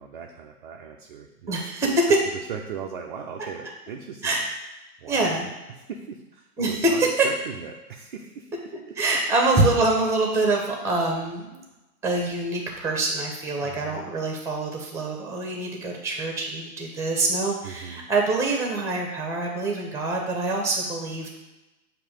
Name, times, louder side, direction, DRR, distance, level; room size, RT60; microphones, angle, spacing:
voice 1, 0.0-2.2 2.5-4.4 5.0-5.5 5.9-8.5 8.9-9.0 13.6-14.1 17.6-18.1, right 7 dB, 35° right, 1 dB, 0.4 m, -38 dB
voice 2, 1.5-2.2 4.2-4.4 5.1-5.5 6.6-7.3 9.0-11.6 12.0-21.3, right 2 dB, 5° right, 1 dB, 0.9 m, -25 dB
7.1 x 2.8 x 5.0 m, 1.0 s
figure-of-eight pair, 120°, 46 cm